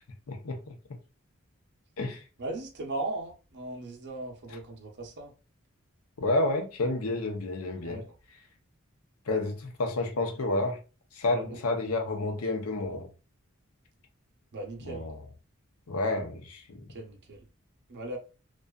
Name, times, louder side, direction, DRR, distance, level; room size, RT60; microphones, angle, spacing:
voice 1, 0.3-0.8 2.0-2.2 6.2-8.0 9.3-10.8 11.1-13.1 14.8-15.2 15.9-16.9, left 2 dB, 90° left, 0.6 m, -30 dB
voice 2, 2.4-5.3 7.8-8.1 11.2-11.6 14.5-15.1 16.9-17.4 17.9-18.2, right 2 dB, 55° right, 0.6 m, -38 dB
2.5 x 2.3 x 2.2 m
head